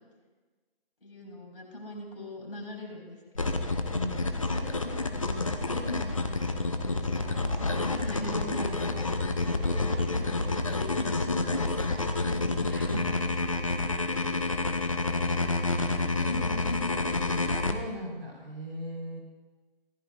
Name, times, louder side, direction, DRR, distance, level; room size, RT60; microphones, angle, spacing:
voice 1, 1.0-3.8 4.4-6.4 6.7-9.2 9.9-12.5 15.6-17.2, left 1 dB, 65° left, 1 dB, 4.8 m, -41 dB
sound 1, 3.3-17.7, left 3 dB, 35° left, 0.7 m, -29 dB
voice 2, 9.6-10.4 12.7-13.3 15.1-15.4 17.5-19.2, equal, 90° right, -1 dB, 4.9 m, -40 dB
20.0 x 14.5 x 2.5 m, 1.3 s
figure-of-eight pair, 160°, 30 cm